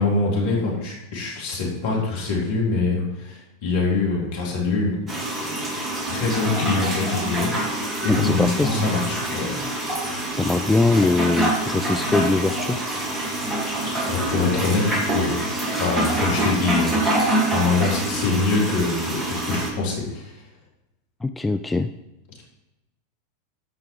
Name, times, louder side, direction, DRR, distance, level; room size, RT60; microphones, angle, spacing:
voice 1, 0.0-5.1 6.1-9.6 14.1-15.3 15.8-20.4, left 3 dB, 60° left, -3 dB, 4.0 m, -24 dB
sound 1, 5.1-19.7, right 1 dB, 20° right, 2.7 m, -26 dB
voice 2, 8.1-8.9 10.3-12.8 21.2-21.9, left 3 dB, 10° left, 9 dB, 0.4 m, -22 dB
13.5 x 5.9 x 4.8 m, 0.98 s
hypercardioid pair, 90°, 0 cm